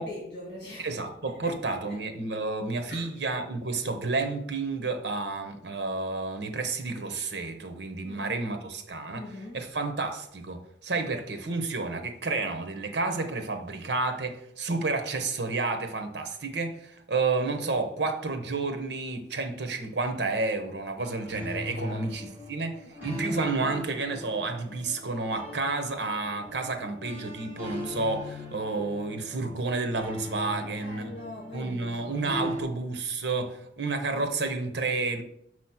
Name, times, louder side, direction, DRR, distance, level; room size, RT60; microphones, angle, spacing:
voice 1, 0.0-1.0 1.4-1.7 2.9-3.1 8.0-8.3 9.1-9.6 21.8-22.0 22.9-23.4 30.5-32.5, left 1 dB, 65° left, 1.6 m, -42 dB
voice 2, 0.8-9.3 9.5-22.7 23.0-31.0 31.5-35.2, right 3 dB, 70° right, 0.9 m, -30 dB
sound 1, 21.0-32.6, left 1 dB, 10° right, 1.5 m, -40 dB
6.2 x 3.1 x 5.8 m
head